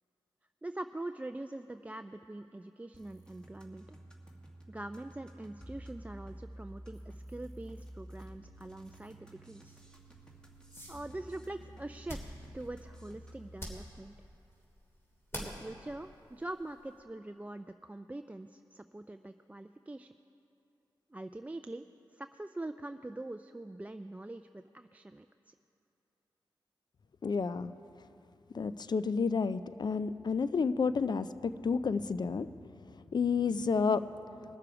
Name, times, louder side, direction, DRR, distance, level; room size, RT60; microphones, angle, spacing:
voice 1, 0.6-4.0 4.7-9.8 10.9-12.2 12.5-14.1 15.3-20.1 21.1-21.8 22.1-25.5, right 2 dB, 15° right, 8 dB, 0.4 m, -43 dB
sound 1, 2.9-13.6, right 1 dB, 10° left, 1.9 m, -51 dB
sound 2, 9.6-17.0, equal, 25° left, 3.1 m, -49 dB
voice 2, 27.2-27.7 28.5-32.5 33.1-34.0, left 5 dB, 50° left, 14 dB, 0.5 m, -30 dB
20.0 x 6.8 x 4.8 m, 2.7 s
cardioid pair, 40°, 9 cm